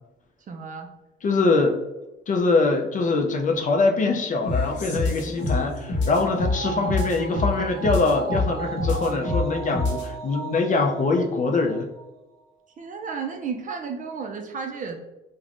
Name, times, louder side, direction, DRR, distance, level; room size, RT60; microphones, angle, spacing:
voice 1, 0.5-0.9 12.8-15.0, right 5 dB, 40° right, 4 dB, 0.4 m, -33 dB
voice 2, 1.2-1.8 2.3-11.9, left 3 dB, 40° left, 3 dB, 0.4 m, -23 dB
sound 1, 4.4-10.2, left 3 dB, 70° left, 0.7 m, -27 dB
sound 2, 5.4-12.0 12.4-12.5, right 5 dB, 20° right, 0.9 m, -36 dB
3.3 x 2.1 x 2.4 m, 1.0 s
cardioid pair, 90°, 20 cm